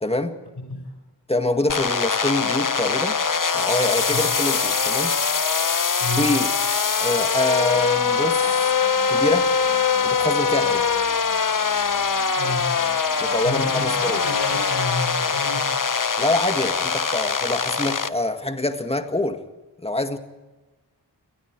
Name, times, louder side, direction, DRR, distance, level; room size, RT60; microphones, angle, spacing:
voice 1, 0.0-0.4 1.3-3.2 3.5-5.2 6.2-6.5 7.0-8.7 9.1-9.5 10.0-10.9 13.2-14.2 16.2-19.4 19.8-20.2, left 2 dB, 15° left, 6 dB, 1.9 m, -25 dB
voice 2, 0.6-0.9 4.1-4.2 6.0-6.3 12.4-12.7 13.4-15.7, left 2 dB, 70° left, 8 dB, 4.9 m, -30 dB
sound 1, 1.7-18.1, left 5 dB, 50° left, 1.1 m, -22 dB
sound 2, 6.0-16.4 16.7-16.8, right 2 dB, 35° right, 2.7 m, -42 dB
28.5 x 20.5 x 4.7 m, 1.2 s
wide cardioid pair, 55°, 42 cm